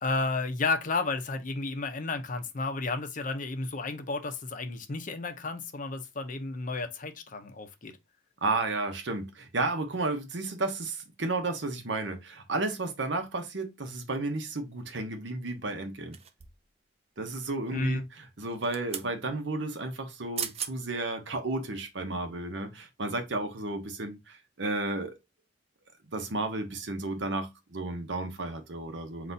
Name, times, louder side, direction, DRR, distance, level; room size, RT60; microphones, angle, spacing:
voice 1, 0.0-7.9 17.7-18.0, left 3 dB, 45° left, 0.6 m, -32 dB
voice 2, 8.4-16.2 17.2-25.2 26.1-29.3, right 2 dB, 65° right, 0.9 m, -33 dB
sound 1, 16.1-16.7 18.4-19.1 20.1-20.2 20.4-20.7 21.3-21.4, right 8 dB, 35° right, 0.5 m, -37 dB
4.0 x 2.5 x 4.0 m
head